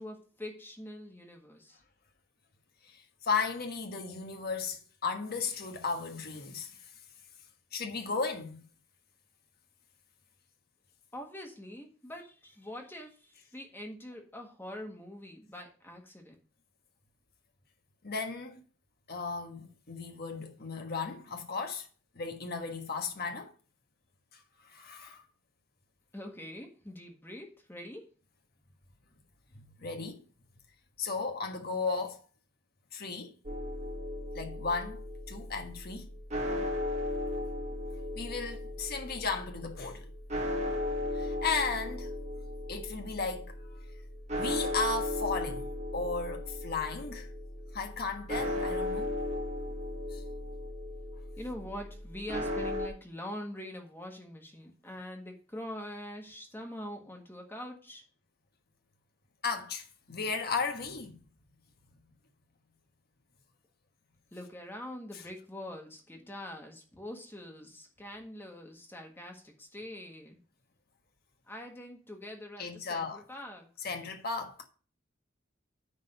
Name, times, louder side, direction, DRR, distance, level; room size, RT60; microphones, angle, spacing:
voice 1, 0.0-1.8 11.1-16.3 26.1-28.0 51.4-58.0 64.3-70.4 71.5-73.7, left 1 dB, 10° left, 1.6 m, -44 dB
voice 2, 3.2-6.7 7.7-8.6 18.0-18.6 19.1-21.9 22.1-23.5 24.7-25.2 29.8-30.2 31.0-32.2 32.9-33.3 34.3-36.1 38.1-40.1 41.1-42.1 42.7-43.5 44.4-45.7 45.9-47.3 47.7-49.2 50.1-50.2 59.4-61.2 72.6-73.2 73.8-74.7, left 4 dB, 50° left, 1.4 m, -35 dB
sound 1, 33.4-52.9, left 1 dB, 35° right, 1.5 m, -36 dB
9.8 x 4.0 x 6.6 m
head